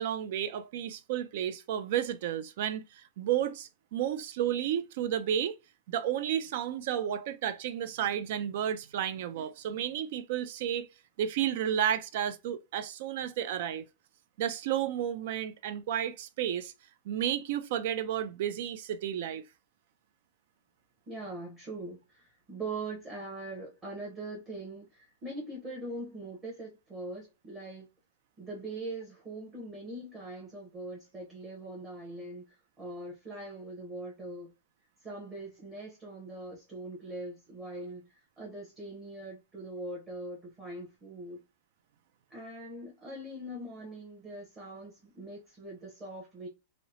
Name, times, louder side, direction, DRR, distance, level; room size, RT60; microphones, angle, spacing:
voice 1, 0.0-5.6 5.9-10.9 11.2-13.8 14.4-16.7 17.1-19.4, right 10 dB, 55° right, 0.3 m, -32 dB
voice 2, 21.1-27.9 28.4-32.4 32.8-34.5 35.0-38.1 38.4-41.4 42.3-46.5, right 2 dB, 15° right, 0.9 m, -42 dB
2.8 x 2.0 x 2.6 m
supercardioid pair, 160°, 0 cm